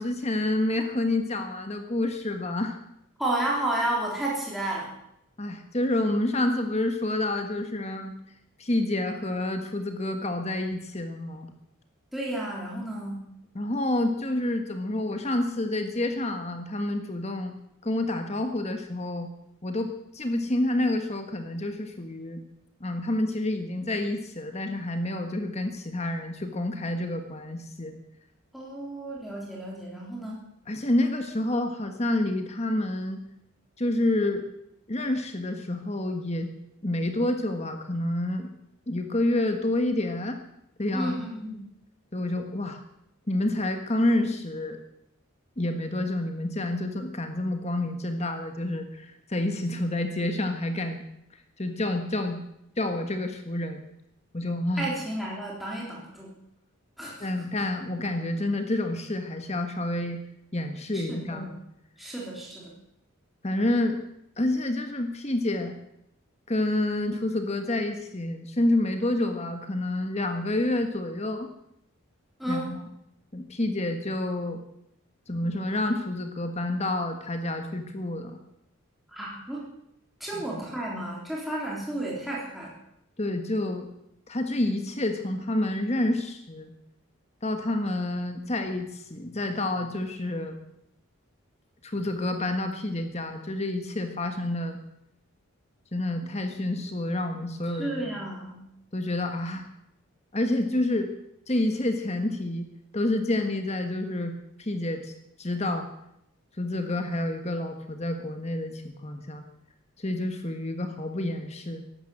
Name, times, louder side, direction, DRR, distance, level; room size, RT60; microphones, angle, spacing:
voice 1, 0.0-2.8 5.4-8.1 8.6-11.5 13.5-17.5 17.8-19.3 19.6-22.4 22.8-28.0 30.7-33.2 33.8-34.4 34.9-36.5 36.8-38.5 38.9-40.4 40.8-41.1 42.1-42.8 43.3-44.8 45.6-51.0 51.6-52.4 52.8-53.8 54.3-54.9 57.2-60.2 60.5-61.5 63.4-64.0 64.4-65.7 66.5-71.5 72.5-72.9 73.3-74.6 75.3-78.4 80.2-80.6 83.2-83.9 84.3-86.7 87.4-90.6 91.8-94.8 95.9-98.1 98.9-99.6 100.3-101.1 101.5-102.7 102.9-105.9 106.6-109.4 110.0-111.8, left 1 dB, 30° left, 6 dB, 1.5 m, -28 dB
voice 2, 3.2-4.9 12.1-13.3 28.5-30.4 40.9-41.6 54.8-56.4 57.0-57.3 60.9-61.6 62.0-62.7 72.4-72.8 75.3-75.4 79.1-79.7 80.2-82.8 97.7-98.7, right 1 dB, ahead, -5 dB, 3.6 m, -32 dB
15.0 x 12.0 x 7.9 m, 0.79 s
head